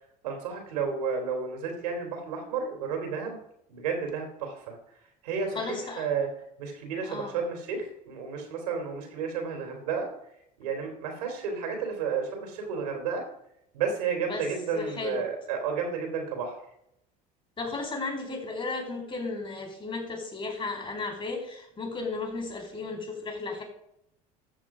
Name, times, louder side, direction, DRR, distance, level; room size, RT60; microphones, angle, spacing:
voice 1, 0.2-3.4 3.7-4.7 5.2-6.3 6.6-10.1 10.6-13.2 13.7-16.6, right 6 dB, 85° right, 4 dB, 3.2 m, -32 dB
voice 2, 5.5-6.1 7.0-7.3 14.3-14.5 14.7-15.2 17.6-23.6, left 3 dB, 25° left, 3 dB, 4.2 m, -34 dB
13.5 x 6.7 x 4.8 m, 0.78 s
hypercardioid pair, 75°, 20 cm